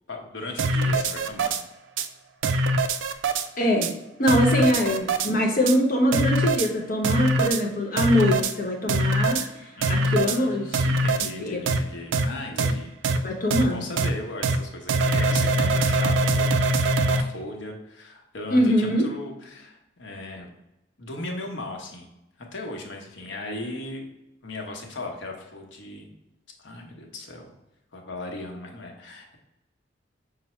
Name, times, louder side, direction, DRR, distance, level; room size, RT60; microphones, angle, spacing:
voice 1, 0.1-1.6 4.5-4.9 9.8-12.9 13.2-20.5 21.0-22.1 22.4-24.1 24.4-26.1 26.6-27.5 27.9-29.4, left 2 dB, 80° left, 1 dB, 0.8 m, -37 dB
sound 1, 0.6-1.6 2.0-2.1 2.4-3.5 3.8-3.9 4.3-5.3 5.7-5.8 6.1-6.7 7.0-7.6 8.0-8.5 8.9-9.5 9.8-10.4 10.7-11.3 11.7-11.8 12.1-12.3 12.6-12.7 13.0-13.2 13.5-13.6 14.0-14.1 14.4-14.6 14.9-17.2, right 2 dB, 80° right, 0.4 m, -23 dB
voice 2, 3.6-3.9 4.2-9.5 9.9-11.6 12.5-12.7 13.2-13.8 18.5-19.1, equal, 45° left, 1 dB, 0.8 m, -23 dB
5.7 x 2.0 x 4.2 m, 0.91 s
head